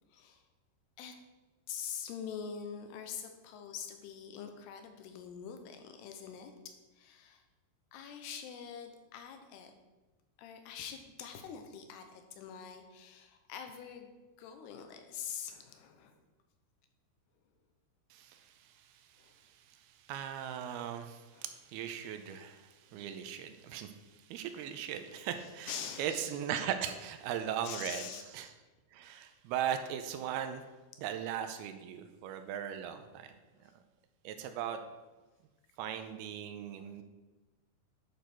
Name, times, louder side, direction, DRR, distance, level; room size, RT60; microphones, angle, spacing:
voice 1, 0.1-0.4 1.0-1.2 1.7-7.4 7.9-9.7 10.4-14.1 14.4-16.2 19.2-19.3 21.3-21.5 22.9-23.1 24.5-24.6 25.4-26.1 27.6-28.2 33.6-33.7 35.9-36.1, left 7 dB, 80° left, 6 dB, 2.9 m, -45 dB
voice 2, 18.1-28.5 28.9-30.6 31.0-33.3 33.6-33.7 34.2-34.8 35.8-37.0, right 9 dB, 80° right, 8 dB, 2.4 m, -39 dB
10.5 x 6.4 x 4.4 m, 1.2 s
omnidirectional pair, 4.8 m